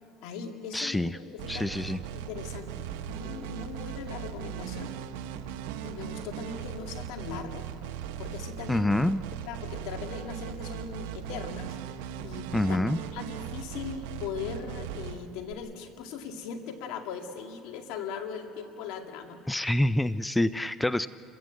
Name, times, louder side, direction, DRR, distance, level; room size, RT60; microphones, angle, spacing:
voice 1, 0.2-4.9 5.8-7.7 8.2-9.1 9.4-11.8 12.2-19.4, left 6 dB, 80° left, 5 dB, 2.1 m, -39 dB
voice 2, 0.7-1.2 1.5-2.0 8.7-9.2 12.5-13.0 19.5-21.1, left 1 dB, 5° left, 15 dB, 0.4 m, -26 dB
sound 1, 1.4-15.5, right 10 dB, 90° right, 0.9 m, -38 dB
28.0 x 15.0 x 7.8 m, 2.6 s
supercardioid pair, 110°, 0 cm